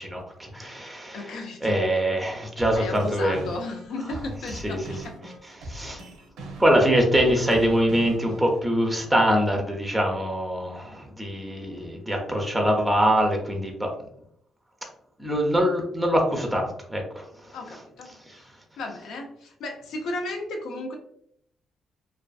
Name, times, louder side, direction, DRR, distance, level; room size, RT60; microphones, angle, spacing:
voice 1, 0.0-1.3 1.6-3.5 4.5-4.8 5.6-6.0 6.6-13.9 15.2-17.2 18.3-18.4, equal, 5° right, 1 dB, 0.5 m, -24 dB
voice 2, 1.1-1.7 2.8-5.2 17.5-18.5 18.8-20.9, left 2 dB, 80° left, 3 dB, 0.5 m, -34 dB
sound 1, 2.6-8.6, right 1 dB, 85° right, 0.6 m, -40 dB
2.4 x 2.4 x 2.3 m, 0.71 s
cardioid pair, 90°, 0 cm